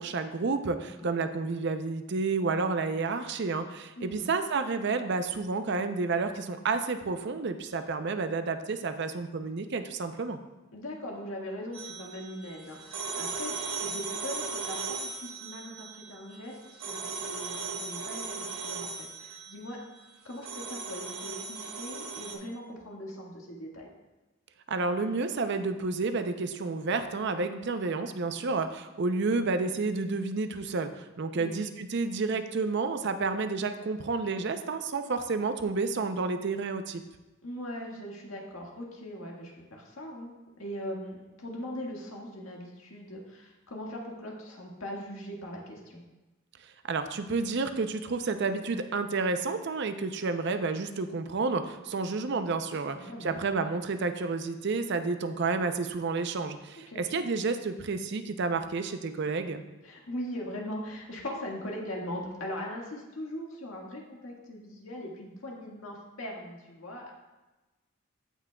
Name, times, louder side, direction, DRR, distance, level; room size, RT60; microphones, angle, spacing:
voice 1, 0.0-10.4 24.7-30.9 31.2-37.0 46.9-59.6, right 4 dB, 55° right, 9 dB, 0.5 m, -30 dB
voice 2, 4.0-4.3 10.7-19.8 20.2-23.9 31.3-31.6 37.4-46.0 52.7-53.4 56.9-57.0 59.8-67.1, left 1 dB, 85° left, -1 dB, 1.7 m, -40 dB
sound 1, 11.7-22.3, right 4 dB, 75° right, 1.3 m, -38 dB
15.5 x 6.0 x 2.3 m, 1.1 s
head